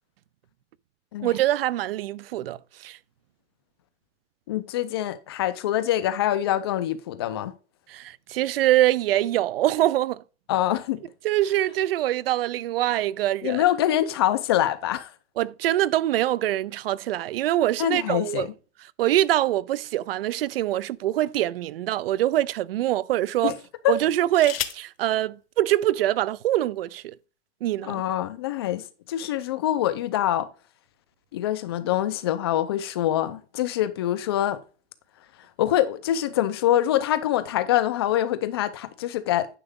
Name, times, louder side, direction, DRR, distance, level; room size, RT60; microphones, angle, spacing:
voice 1, 1.2-3.0 7.9-10.2 11.2-13.6 15.4-18.5 19.0-23.5 23.9-27.1 27.6-28.0, right 14 dB, 55° right, 0.5 m, -24 dB
voice 2, 4.5-7.5 10.5-11.0 13.4-15.1 17.8-18.5 23.4-23.5 23.8-24.0 27.8-30.5 31.3-34.6 35.6-39.5, left 12 dB, 25° left, 0.4 m, -25 dB
sound 1, 20.2-21.4 22.1-22.3 23.9-25.0 26.1-26.2 26.5-26.9, left 12 dB, 55° left, 1.0 m, -36 dB
10.0 x 6.8 x 3.6 m
supercardioid pair, 170°, 35 cm